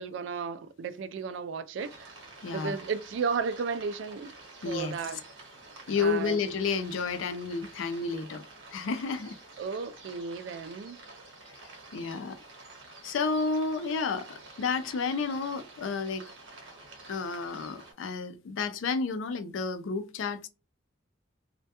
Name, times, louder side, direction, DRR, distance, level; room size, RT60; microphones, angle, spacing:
voice 1, 0.0-2.1 2.5-4.3 4.6-5.2 6.0-6.4 9.6-11.0, right 5 dB, 65° right, 0.3 m, -34 dB
sound 1, 1.8-17.9, right 2 dB, 85° right, 0.9 m, -49 dB
voice 2, 2.4-2.8 4.6-4.9 5.9-8.4 8.7-9.4 11.9-12.4 13.0-16.2 17.1-20.5, left 4 dB, 80° left, 0.4 m, -31 dB
2.2 x 2.1 x 2.8 m
head